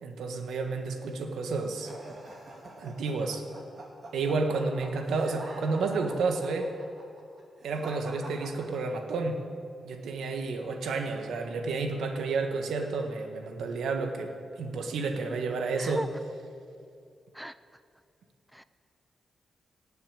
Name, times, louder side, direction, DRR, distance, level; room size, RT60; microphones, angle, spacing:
voice 1, 0.0-1.9 2.8-3.4 4.1-6.7 7.6-9.4 9.8-14.3 14.6-16.0, right 3 dB, 85° right, 4 dB, 1.5 m, -31 dB
sound 1, 1.8-9.2, right 2 dB, 45° right, 2.7 m, -45 dB
voice 2, 15.8-16.1 17.3-17.5 18.5-18.6, equal, ahead, 13 dB, 0.4 m, -37 dB
18.0 x 6.8 x 9.0 m, 2.4 s
cardioid pair, 105°, 0 cm